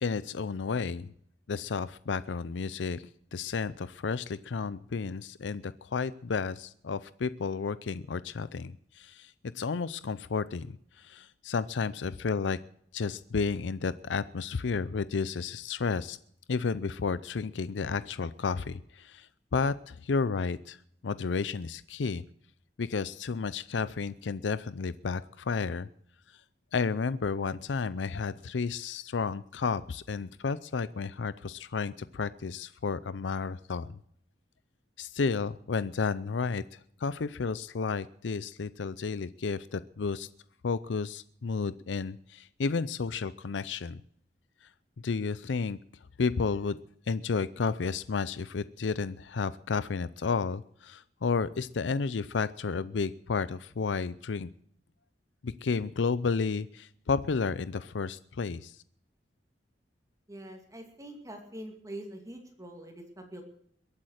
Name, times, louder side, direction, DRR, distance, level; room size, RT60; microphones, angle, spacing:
voice 1, 0.0-1.1 1.5-12.6 12.9-16.2 16.5-20.8 21.0-22.2 22.8-25.9 26.7-34.0 35.0-40.3 40.6-44.0 45.0-45.8 46.2-46.8 47.1-54.5 55.4-58.8, left 5 dB, 90° left, 16 dB, 0.5 m, -32 dB
voice 2, 60.3-63.4, right 1 dB, 20° right, 4 dB, 2.4 m, -44 dB
22.5 x 8.6 x 6.4 m, 0.66 s
head